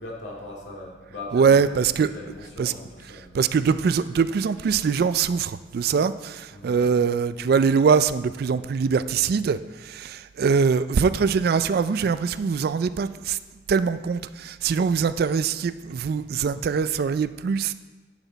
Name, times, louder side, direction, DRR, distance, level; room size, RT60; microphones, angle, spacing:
voice 1, 0.0-1.7 2.0-3.4 6.5-6.8, left 2 dB, 70° left, -3 dB, 2.3 m, -39 dB
voice 2, 1.3-2.1 2.6-2.7 3.3-13.4 13.7-17.7, right 6 dB, 55° right, 13 dB, 0.3 m, -23 dB
10.5 x 6.3 x 4.0 m, 1.2 s
head